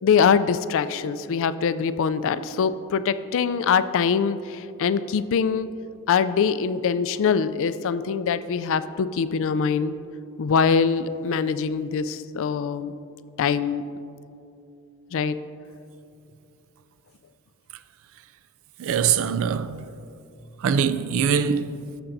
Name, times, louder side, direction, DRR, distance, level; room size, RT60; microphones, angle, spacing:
voice 1, 0.0-5.7 6.1-10.0 10.4-12.9 13.4-13.9 15.1-15.4, left 6 dB, 60° left, 0.3 m, -23 dB
voice 2, 18.8-19.9 20.6-22.0, right 7 dB, 65° right, 0.4 m, -23 dB
17.0 x 6.8 x 2.6 m
head